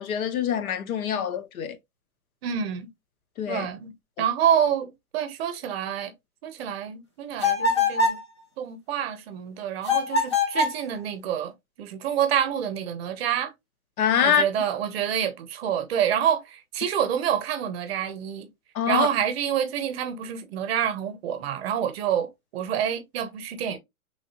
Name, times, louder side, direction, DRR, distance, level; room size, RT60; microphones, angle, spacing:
voice 1, 0.0-1.8 3.4-3.7 14.0-14.4 18.7-19.1, left 8 dB, 70° left, 0.8 m, -24 dB
voice 2, 2.4-2.9 3.5-3.9 4.2-6.1 6.4-8.2 8.6-11.5 11.8-13.5 14.2-18.5 18.9-23.8, right 9 dB, 45° right, 0.7 m, -27 dB
sound 1, 7.4-8.2 9.8-10.8, left 3 dB, 25° left, 0.3 m, -23 dB
3.2 x 2.6 x 2.7 m
hypercardioid pair, 140°, 44 cm